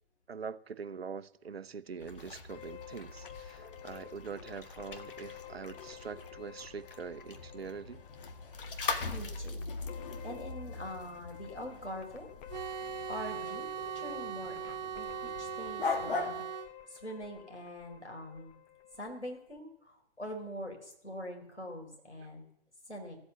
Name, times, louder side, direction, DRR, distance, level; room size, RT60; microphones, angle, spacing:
voice 1, 0.3-8.0, right 6 dB, 65° right, 0.9 m, -43 dB
sound 1, 2.0-16.4, left 4 dB, 55° left, 1.7 m, -41 dB
sound 2, 2.5-19.6, left 12 dB, 15° left, 0.6 m, -52 dB
voice 2, 9.1-9.7 10.2-12.3 13.1-13.7 13.9-18.5 18.9-22.5 22.9-23.2, equal, 90° left, 4.5 m, -44 dB
sound 3, 12.5-16.7, right 8 dB, 40° right, 1.1 m, -39 dB
15.5 x 8.1 x 8.3 m
figure-of-eight pair, 130°, 33 cm